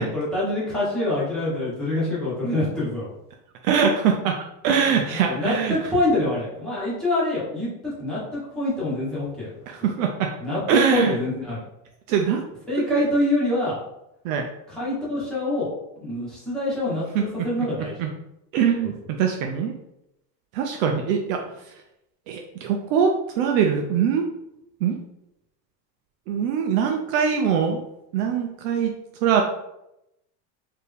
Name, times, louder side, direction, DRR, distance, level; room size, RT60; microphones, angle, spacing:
voice 1, 0.0-3.1 5.0-9.5 10.4-11.6 12.7-13.8 14.7-15.7 16.0-17.9, left 1 dB, ahead, -10 dB, 1.3 m, -25 dB
voice 2, 3.6-5.8 9.7-10.3 10.7-11.2 12.1-12.4 12.8-13.0 14.2-14.5 17.1-17.3 18.0-18.1 18.5-19.7 20.5-21.7 22.3-24.3 24.8-25.0 26.3-27.8 28.1-28.9 29.2-29.4, right 7 dB, 55° right, 3 dB, 0.5 m, -22 dB
4.4 x 2.7 x 3.4 m, 0.84 s
supercardioid pair, 165°, 48 cm